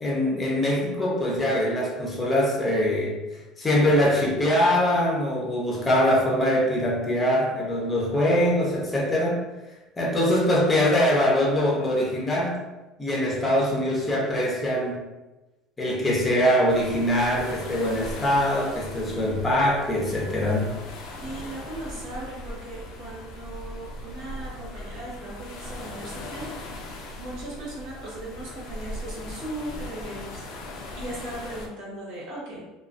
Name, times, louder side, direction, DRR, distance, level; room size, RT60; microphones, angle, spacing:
voice 1, 0.0-9.4 10.0-12.6 13.0-15.0 15.8-20.7, left 1 dB, 15° left, -4 dB, 0.6 m, -23 dB
sound 1, 16.7-31.7, left 1 dB, 60° left, 0.4 m, -39 dB
voice 2, 21.2-26.5 26.8-26.9 27.2-30.4 30.9-32.6, right 1 dB, 65° right, -5 dB, 1.0 m, -38 dB
2.3 x 2.3 x 2.4 m, 1.1 s
cardioid pair, 140°, 0 cm